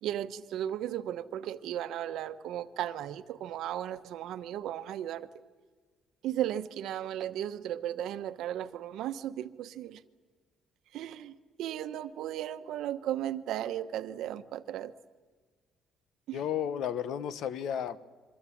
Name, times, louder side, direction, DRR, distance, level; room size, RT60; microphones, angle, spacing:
voice 1, 0.0-5.3 6.2-10.0 10.9-11.3 11.6-14.9 16.3-16.4, right 11 dB, 75° right, 11 dB, 1.1 m, -35 dB
voice 2, 16.3-18.0, left 9 dB, 65° left, 15 dB, 1.1 m, -33 dB
26.5 x 23.5 x 8.6 m, 1.5 s
cardioid pair, 170°, 0 cm